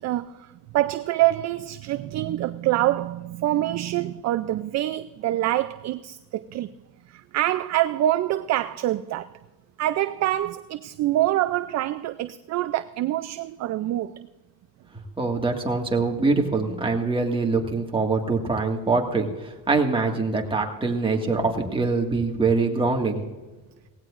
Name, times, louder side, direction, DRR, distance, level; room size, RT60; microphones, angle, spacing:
voice 1, 0.0-6.7 7.1-9.4 9.8-14.3, right 14 dB, 45° right, 0.4 m, -25 dB
voice 2, 15.2-23.2, right 3 dB, 10° right, 1.8 m, -24 dB
18.0 x 16.5 x 2.5 m
cardioid pair, 135°, 41 cm